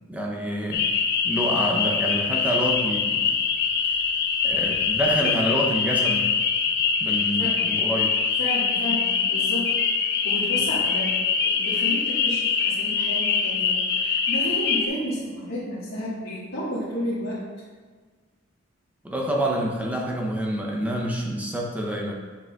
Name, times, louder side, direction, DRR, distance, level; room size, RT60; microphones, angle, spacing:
voice 1, 0.1-0.9 1.2-3.3 3.8-4.0 4.4-6.3 7.0-8.1 19.0-22.1, right 1 dB, 10° right, -2 dB, 0.5 m, -27 dB
sound 1, 0.7-14.9, left 6 dB, 55° left, 0.5 m, -24 dB
voice 2, 8.4-17.4, equal, 90° left, -12 dB, 1.6 m, -32 dB
6.8 x 6.0 x 2.3 m, 1.5 s
head